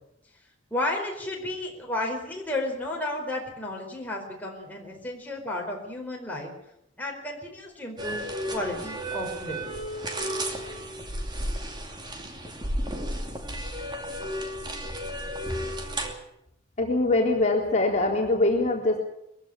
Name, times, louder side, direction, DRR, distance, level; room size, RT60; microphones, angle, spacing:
voice 1, 0.7-6.5 7.0-8.2 8.5-9.7, left 1 dB, 10° left, -1 dB, 4.6 m, -32 dB
sound 1, 8.0-16.1, right 1 dB, 25° right, 2.7 m, -33 dB
voice 2, 16.8-19.0, left 2 dB, 40° left, 0 dB, 3.8 m, -23 dB
22.0 x 15.5 x 8.8 m, 0.80 s
head